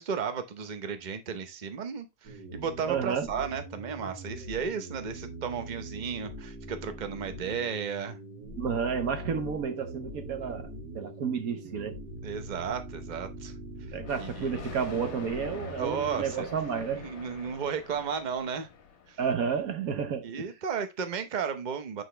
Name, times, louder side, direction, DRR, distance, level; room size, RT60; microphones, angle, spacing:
voice 1, 0.0-8.2 12.2-13.5 13.9-14.6 15.8-16.5 16.9-18.7 19.1-19.2 20.2-22.0, right 6 dB, 35° right, 0.8 m, -34 dB
sound 1, 2.2-16.3, equal, 75° right, 2.9 m, -42 dB
voice 2, 2.9-3.3 8.6-12.0 13.9-17.0 19.2-20.5, right 6 dB, 60° right, 1.3 m, -31 dB
Thunder, 14.0-19.4, left 6 dB, 50° left, 1.1 m, -45 dB
8.1 x 4.6 x 3.3 m
omnidirectional pair, 1.9 m